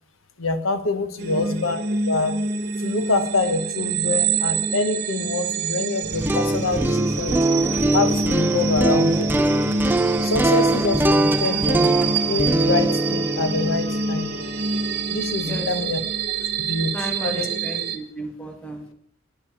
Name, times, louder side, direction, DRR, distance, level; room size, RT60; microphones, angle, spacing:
voice 1, 0.4-1.8 2.1-2.4 2.8-7.4 7.9-9.3 10.2-11.9 12.3-14.3 15.1-16.0 16.6-16.9 17.2-17.5, left 3 dB, 85° left, 9 dB, 1.0 m, -25 dB
voice 2, 1.2-1.5 11.4-11.7 15.5-16.0 16.9-18.9, equal, 5° left, 3 dB, 1.3 m, -34 dB
sound 1, 1.2-18.0, right 4 dB, 55° right, 0.9 m, -26 dB
sound 2, 6.0-16.1, right 1 dB, 10° right, 0.4 m, -23 dB
9.0 x 5.7 x 6.9 m, 0.67 s
head